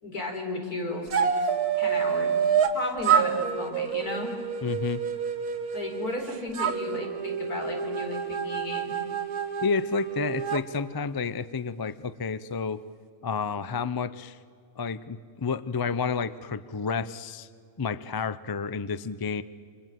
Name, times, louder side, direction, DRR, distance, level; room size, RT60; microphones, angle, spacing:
voice 1, 0.0-1.5 1.7-2.3 2.7-4.4 5.7-8.9, left 2 dB, 80° left, 2 dB, 4.7 m, -34 dB
sound 1, 1.1-2.8 3.0-6.2 6.5-10.6, right 7 dB, 85° right, 1.7 m, -27 dB
voice 2, 4.6-5.0 9.6-12.8 13.2-14.4 14.8-17.5 17.8-19.4, left 5 dB, 35° left, 15 dB, 0.3 m, -30 dB
28.5 x 25.5 x 7.6 m, 2.1 s
omnidirectional pair, 1.6 m